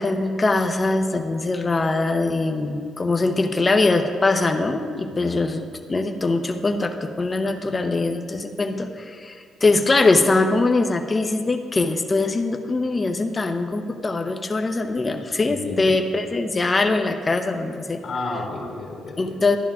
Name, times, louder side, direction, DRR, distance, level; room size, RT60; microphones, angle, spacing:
voice 1, 0.0-18.0 19.2-19.6, left 3 dB, 30° left, 6 dB, 0.7 m, -22 dB
voice 2, 15.5-15.9 18.0-19.4, left 2 dB, 65° left, -3 dB, 1.8 m, -32 dB
13.0 x 10.5 x 2.4 m, 2.2 s
cardioid pair, 90°, 0 cm